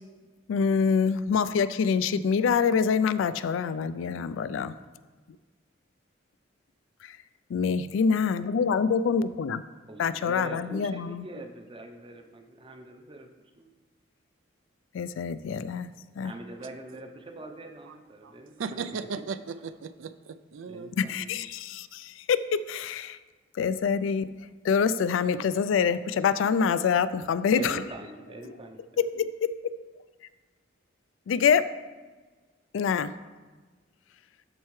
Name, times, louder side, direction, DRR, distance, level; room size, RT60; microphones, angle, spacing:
voice 1, 0.5-4.7 7.5-9.6 10.0-11.2 14.9-15.9 16.2-16.3 21.0-23.2 23.6-24.3 24.6-27.8 29.0-29.7 31.3-31.6 32.7-33.1, left 6 dB, 90° left, 14 dB, 0.3 m, -25 dB
voice 2, 9.9-13.3 13.6-13.7 16.2-18.8 20.7-21.3 27.6-29.0, right 2 dB, 30° right, 5 dB, 0.6 m, -42 dB
voice 3, 18.2-21.0, right 5 dB, 85° right, 13 dB, 0.4 m, -37 dB
13.0 x 4.5 x 3.1 m, 1.3 s
head